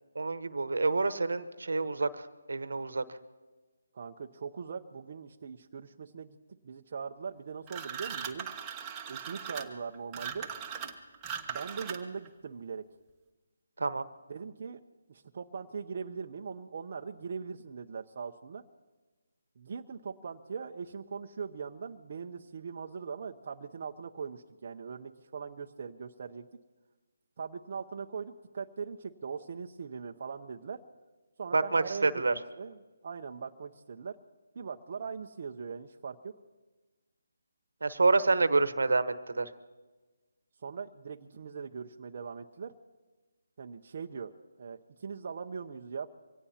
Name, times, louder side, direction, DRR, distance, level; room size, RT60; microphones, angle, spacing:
voice 1, 0.1-3.0 13.8-14.0 31.5-32.3 37.8-39.5, right 3 dB, 75° right, 13 dB, 1.1 m, -28 dB
voice 2, 3.9-6.4 6.6-8.5 9.1-10.5 11.5-12.9 14.3-14.8 15.1-18.6 19.6-26.5 27.4-30.8 31.4-32.8 33.0-34.2 34.5-36.3 40.6-42.7 43.6-46.1, right 5 dB, 45° right, 3 dB, 0.7 m, -41 dB
sound 1, 7.7-12.3, right 7 dB, 15° right, 1.2 m, -39 dB
25.0 x 17.5 x 2.9 m, 1.2 s
figure-of-eight pair, 160°, 0 cm